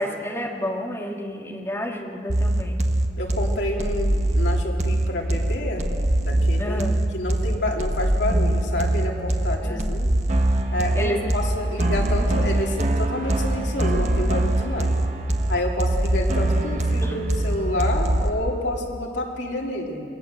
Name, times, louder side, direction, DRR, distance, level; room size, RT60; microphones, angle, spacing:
voice 1, 0.0-2.8 6.6-7.0 9.6-9.8 10.9-11.4 17.0-17.2, equal, 15° left, -1 dB, 2.5 m, -30 dB
sound 1, 2.3-18.3, right 1 dB, 40° right, 1.3 m, -23 dB
voice 2, 3.2-5.9 6.2-6.8 7.1-10.1 10.7-15.0 15.5-20.0, left 1 dB, 75° left, -1 dB, 3.4 m, -29 dB
27.0 x 21.0 x 7.7 m, 2.5 s
head